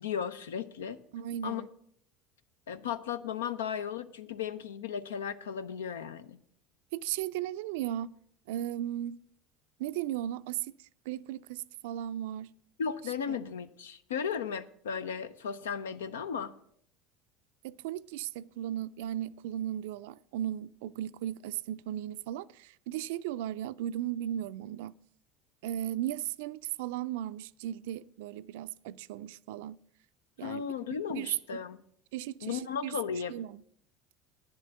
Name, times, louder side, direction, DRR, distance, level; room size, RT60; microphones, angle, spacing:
voice 1, 0.0-1.0 1.4-1.6 2.7-6.4 12.8-16.5 30.4-31.8 32.4-33.3, left 7 dB, 85° left, 0.6 m, -35 dB
voice 2, 1.1-1.7 6.9-8.2 8.5-9.2 9.8-12.5 13.3-13.4 17.6-24.9 25.6-29.8 30.4-30.7 31.1-31.3 32.1-32.9 33.3-33.6, right 12 dB, 75° right, 0.3 m, -36 dB
9.6 x 7.4 x 7.1 m
hypercardioid pair, 75°, 0 cm